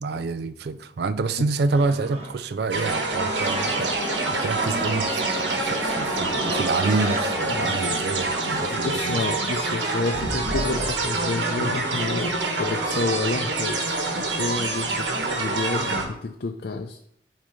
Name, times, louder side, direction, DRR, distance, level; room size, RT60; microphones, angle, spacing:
voice 1, 0.0-9.4, right 3 dB, 65° right, 0.4 m, -27 dB
Livestock farm animals working animals, 1.7-7.3, right 2 dB, 35° right, 1.2 m, -37 dB
sound 1, 2.7-16.1, right 3 dB, 90° right, 1.1 m, -26 dB
sound 2, 3.4-8.7, left 2 dB, 15° left, 0.6 m, -34 dB
voice 2, 8.7-15.1 15.3-17.0, left 3 dB, 60° left, 0.5 m, -29 dB
7.5 x 2.8 x 5.0 m
head